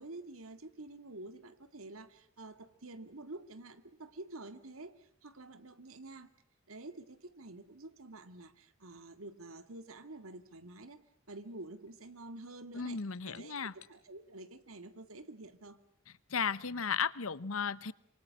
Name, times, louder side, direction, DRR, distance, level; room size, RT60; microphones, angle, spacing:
voice 1, 0.0-6.3 6.7-11.0 11.3-15.8, right 2 dB, 80° right, 10 dB, 2.1 m, -49 dB
sound 1, 9.7-9.9 10.7-11.0 11.3-11.6 11.9-12.3 12.8-14.1, left 11 dB, 90° left, 3.1 m, -65 dB
voice 2, 12.7-13.7 16.3-17.9, left 6 dB, 75° left, 18 dB, 1.0 m, -34 dB
26.5 x 24.5 x 7.4 m, 0.69 s
head